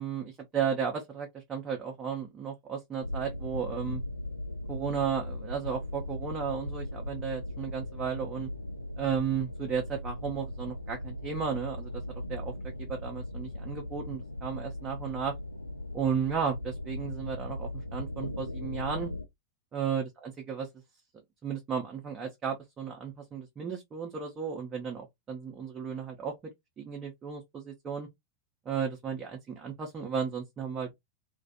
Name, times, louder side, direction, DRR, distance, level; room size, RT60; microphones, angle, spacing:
voice 1, 0.0-4.0 4.7-8.5 9.0-12.0 12.3-12.5 12.8-15.3 15.9-19.1 19.7-20.7 21.4-26.3 26.8-28.1 28.7-30.9, right 7 dB, 25° right, 0.6 m, -34 dB
sound 1, 3.0-19.2, left 1 dB, 85° left, 0.5 m, -38 dB
2.4 x 2.2 x 2.5 m
figure-of-eight pair, 90°, 0 cm